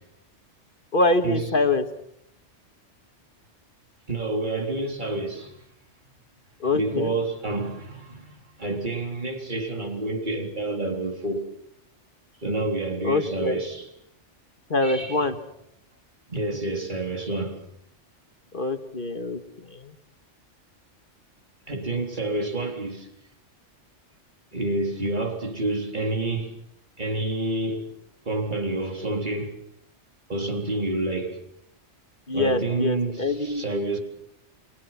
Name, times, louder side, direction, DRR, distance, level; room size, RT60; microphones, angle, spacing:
voice 1, 0.9-1.8 6.6-7.1 13.0-13.6 14.7-15.4 18.5-19.4 19.7-19.9 32.3-33.6, left 2 dB, 45° left, 2.0 m, -24 dB
voice 2, 4.1-5.6 6.7-11.5 12.4-13.9 14.8-15.2 16.3-17.6 21.7-23.1 24.5-26.6 27.0-27.9 28.3-29.6 30.3-31.4 32.3-34.0, right 2 dB, 40° right, 3.9 m, -28 dB
30.0 x 22.5 x 5.9 m
omnidirectional pair, 1.2 m